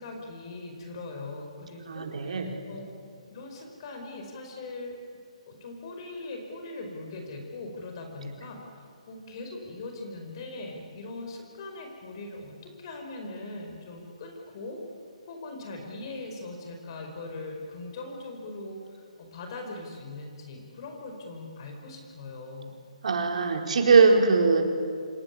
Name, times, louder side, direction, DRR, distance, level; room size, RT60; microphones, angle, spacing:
voice 1, 0.0-2.8 3.3-5.0 5.5-14.8 15.3-22.7, left 2 dB, 45° left, 3 dB, 5.0 m, -40 dB
voice 2, 1.9-2.5 23.0-24.6, right 4 dB, 70° right, 3 dB, 4.5 m, -21 dB
26.5 x 21.0 x 9.7 m, 2.3 s
hypercardioid pair, 155°, 4 cm